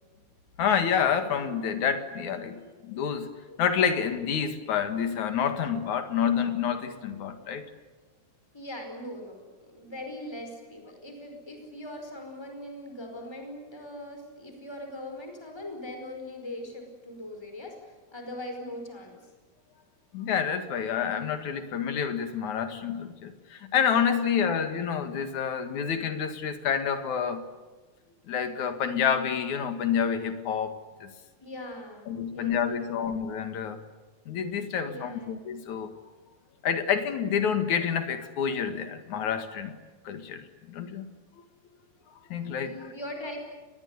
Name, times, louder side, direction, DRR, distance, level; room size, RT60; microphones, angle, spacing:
voice 1, 0.6-7.6 20.1-27.4 28.3-30.7 31.0-31.1 32.1-33.8 34.3-35.9 36.6-39.8 40.0-41.1 42.3-42.7, left 7 dB, 75° left, 8 dB, 3.3 m, -28 dB
voice 2, 8.5-17.7 18.1-19.2 24.3-24.5 31.4-33.1 34.8-35.3 42.6-43.4, left 1 dB, 10° left, 4 dB, 4.6 m, -41 dB
29.0 x 20.5 x 9.6 m, 1.2 s
omnidirectional pair, 3.4 m